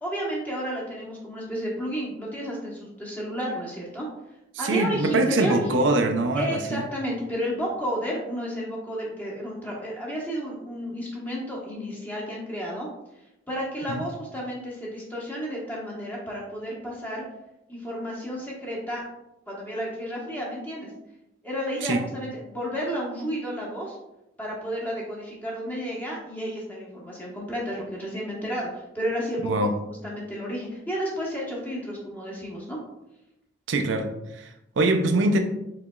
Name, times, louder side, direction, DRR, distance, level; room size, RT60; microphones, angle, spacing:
voice 1, 0.0-4.1 4.6-5.8 6.3-12.9 13.5-17.2 17.7-19.0 19.5-20.9 21.4-24.0 24.4-29.7 30.0-32.8, equal, 10° left, -4 dB, 1.1 m, -32 dB
voice 2, 4.5-6.8 13.9-14.0 21.8-22.0 29.4-29.7 33.7-35.4, right 2 dB, 80° right, 5 dB, 0.5 m, -24 dB
4.9 x 4.0 x 2.3 m, 0.89 s
head